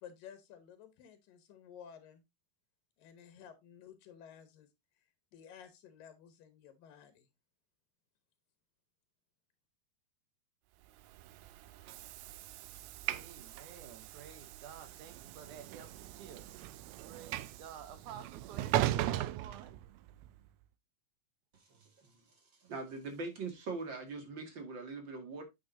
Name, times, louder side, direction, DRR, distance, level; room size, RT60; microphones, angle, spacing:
voice 1, 0.0-2.2 3.0-4.7 5.3-7.3, left 8 dB, 90° left, 2.8 m, -54 dB
Train / Sliding door, 11.0-20.3, right 14 dB, 90° right, 1.6 m, -39 dB
voice 2, 13.1-16.5 17.1-19.8, right 8 dB, 70° right, 2.4 m, -51 dB
voice 3, 21.7-22.1 22.6-25.4, right 3 dB, 40° right, 2.4 m, -42 dB
9.0 x 7.7 x 2.7 m
omnidirectional pair, 3.8 m